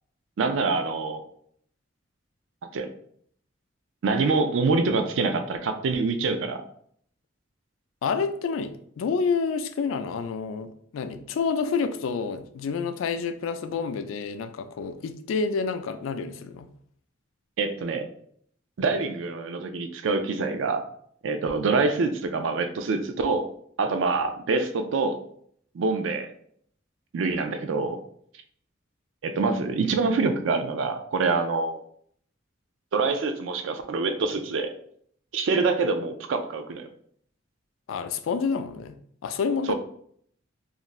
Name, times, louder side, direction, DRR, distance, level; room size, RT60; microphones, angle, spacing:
voice 1, 0.4-1.2 2.7-2.9 4.0-6.6 17.6-18.1 18.8-20.8 21.2-23.5 23.8-25.2 25.7-26.3 27.1-28.0 29.2-31.8 32.9-34.7 35.3-36.9 39.7-39.8, right 4 dB, 75° right, 0.4 m, -25 dB
voice 2, 8.0-16.7 37.9-39.0 39.2-39.7, left 5 dB, 90° left, 0.3 m, -28 dB
2.5 x 2.4 x 3.0 m
head